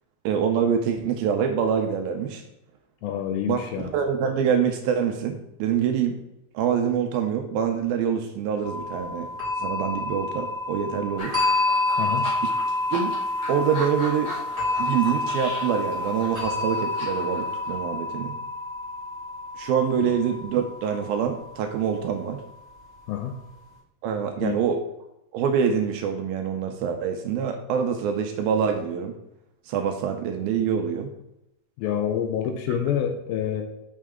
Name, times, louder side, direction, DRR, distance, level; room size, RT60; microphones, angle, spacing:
voice 1, 0.3-2.4 3.5-6.2 6.5-9.3 9.6-11.4 12.4-12.5 12.9-13.2 13.5-14.3 14.8-18.4 19.6-22.4 24.0-24.8 25.3-29.2 29.7-31.1 32.7-32.8, right 7 dB, 80° right, 5 dB, 2.3 m, -25 dB
voice 2, 3.0-3.9 12.0-12.3 20.0-20.1 23.1-23.4 24.4-24.6 31.8-33.6, left 9 dB, 80° left, 6 dB, 2.3 m, -27 dB
sound 1, 8.6-21.6, left 2 dB, 15° right, 1.1 m, -28 dB
sound 2, 11.2-17.9, left 2 dB, 50° left, 1.7 m, -38 dB
6.7 x 6.3 x 3.6 m, 0.85 s
omnidirectional pair, 4.6 m